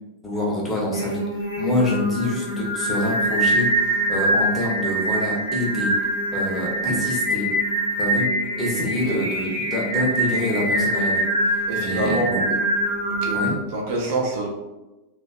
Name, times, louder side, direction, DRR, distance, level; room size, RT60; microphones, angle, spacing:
voice 1, 0.2-1.2 1.6-5.9 6.3-7.5 8.0-8.3 8.6-12.4 13.3-13.6, left 1 dB, 15° left, -4 dB, 0.7 m, -26 dB
Singing, 0.9-13.5, right 1 dB, 90° left, 0.6 m, -24 dB
voice 2, 11.6-12.3 13.1-14.5, right 2 dB, 50° right, -2 dB, 0.5 m, -26 dB
2.5 x 2.2 x 2.3 m, 1.1 s
figure-of-eight pair, 90°, 0 cm